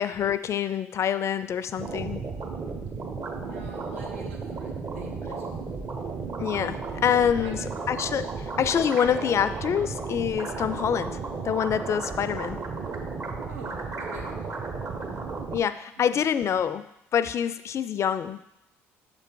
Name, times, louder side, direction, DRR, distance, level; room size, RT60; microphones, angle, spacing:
voice 1, 0.0-2.2 6.4-11.2 11.4-12.6 15.5-16.9 17.1-18.4, left 8 dB, 45° left, 13 dB, 0.3 m, -26 dB
sound 1, 1.8-15.6, right 4 dB, 45° right, 1.1 m, -34 dB
voice 2, 3.4-5.7 7.3-7.7 13.5-14.4 16.1-16.5, right 2 dB, 85° right, 1 dB, 0.7 m, -45 dB
6.6 x 3.5 x 4.5 m, 0.82 s
hypercardioid pair, 55°, 7 cm